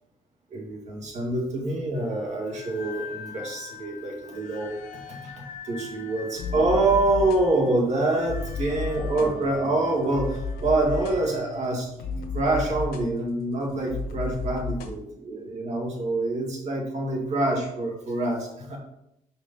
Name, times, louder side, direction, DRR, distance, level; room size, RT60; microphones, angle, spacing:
voice 1, 0.5-4.8 5.1-5.3 5.6-11.9 12.3-18.8, right 2 dB, 50° right, -1 dB, 2.1 m, -26 dB
sound 1, 1.9-11.7, left 6 dB, 60° left, 1.0 m, -44 dB
sound 2, 6.4-14.9, left 4 dB, 85° left, 1.0 m, -34 dB
4.9 x 4.8 x 5.6 m, 0.79 s
cardioid pair, 140°, 15 cm